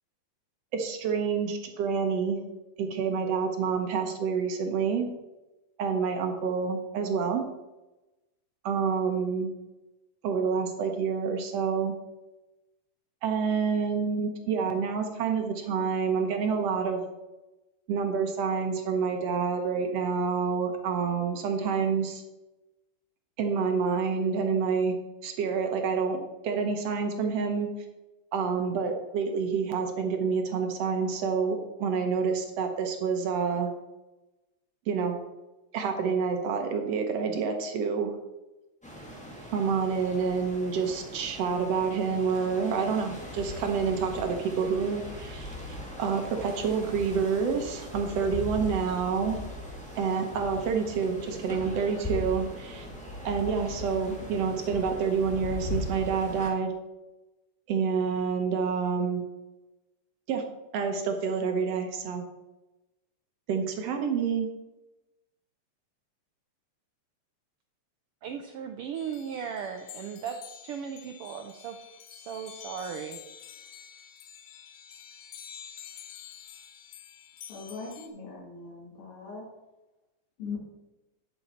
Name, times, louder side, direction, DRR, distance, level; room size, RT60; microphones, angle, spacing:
voice 1, 0.7-2.4 2.8-5.1 5.8-7.4 8.6-9.5 10.2-12.0 13.2-17.0 17.9-22.2 23.4-25.0 25.2-27.7 28.3-33.7 34.9-35.2 35.7-38.1 39.5-49.4 50.0-52.9 53.2-56.7 57.7-59.2 60.3-60.4 60.7-62.3 63.5-64.5, right 5 dB, 65° right, 4 dB, 2.0 m, -28 dB
sound 1, 38.8-56.5, left 1 dB, 5° left, 1.2 m, -39 dB
voice 2, 68.2-70.4 70.6-73.2, right 7 dB, 85° right, 5 dB, 1.2 m, -37 dB
sound 2, 68.9-78.1, left 9 dB, 85° left, 2.3 m, -48 dB
voice 3, 77.5-79.5 80.4-80.6, left 4 dB, 50° left, -2 dB, 2.6 m, -40 dB
10.5 x 6.9 x 4.4 m, 1.0 s
omnidirectional pair, 3.3 m